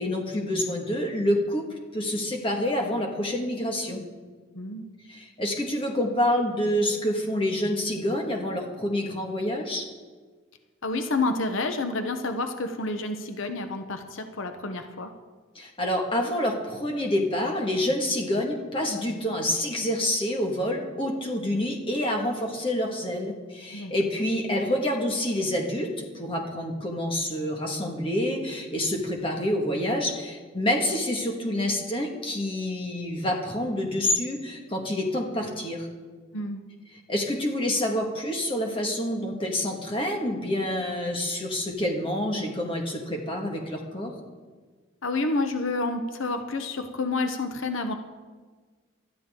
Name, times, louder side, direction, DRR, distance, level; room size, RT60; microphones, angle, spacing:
voice 1, 0.0-4.0 5.1-9.9 15.6-35.9 37.1-44.1, left 1 dB, 25° left, 1 dB, 1.9 m, -27 dB
voice 2, 4.5-4.8 10.8-15.1 23.7-23.9 36.3-36.6 45.0-47.9, left 3 dB, 80° left, 7 dB, 0.9 m, -29 dB
19.0 x 12.5 x 3.8 m, 1.4 s
head